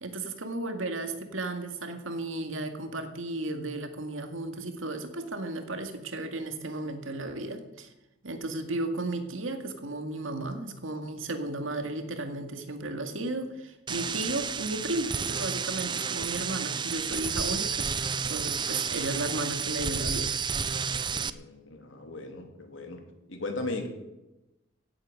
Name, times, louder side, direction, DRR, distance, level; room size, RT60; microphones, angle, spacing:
voice 1, 0.0-7.9 8.2-20.3, right 2 dB, 85° right, 6 dB, 2.0 m, -34 dB
sound 1, 13.9-21.3, right 6 dB, 25° right, 0.5 m, -31 dB
voice 2, 21.1-23.0 23.3-23.9, left 2 dB, 75° left, 4 dB, 3.0 m, -37 dB
16.5 x 9.0 x 7.8 m, 0.98 s
head